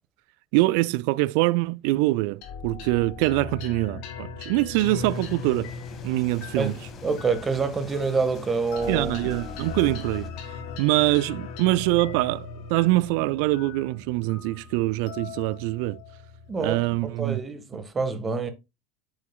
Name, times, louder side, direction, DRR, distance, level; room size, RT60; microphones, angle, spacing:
voice 1, 0.5-5.7 6.0-6.7 8.9-10.3 10.8-16.0 16.6-17.4 17.7-17.8, right 20 dB, 60° right, 0.3 m, -24 dB
sound 1, 2.4-17.1, left 5 dB, 55° left, 1.8 m, -39 dB
sound 2, 4.8-10.3, left 6 dB, 40° left, 1.6 m, -45 dB
voice 2, 6.6-9.2 16.5-18.5, right 4 dB, 25° right, 1.3 m, -27 dB
8.1 x 7.1 x 2.2 m
figure-of-eight pair, 75°, 0 cm